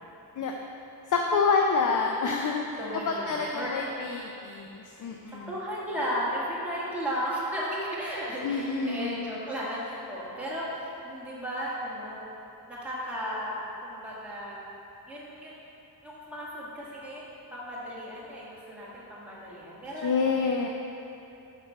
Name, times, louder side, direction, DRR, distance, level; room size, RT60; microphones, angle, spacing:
voice 1, 1.1-2.8 3.1-5.5 8.4-9.2 20.0-20.7, left 4 dB, 50° left, 2 dB, 0.5 m, -27 dB
voice 2, 2.8-3.8 5.3-12.2 12.6-14.6 15.1-15.5 16.0-20.5, equal, 5° right, -8 dB, 1.6 m, -35 dB
8.0 x 5.7 x 4.8 m, 2.8 s
wide cardioid pair, 180°, 39 cm